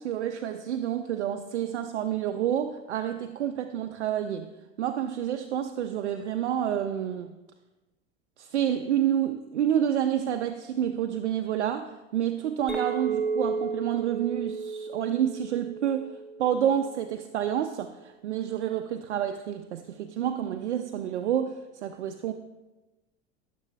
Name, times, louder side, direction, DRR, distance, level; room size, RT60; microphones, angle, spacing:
voice 1, 0.0-4.5 4.8-7.3 8.4-16.1 16.4-22.3, right 10 dB, 85° right, 7 dB, 0.5 m, -29 dB
Chink clink, 12.7-17.2, right 5 dB, 5° right, 1.7 m, -33 dB
13.5 x 6.7 x 2.3 m, 1.1 s
hypercardioid pair, 90°, 34 cm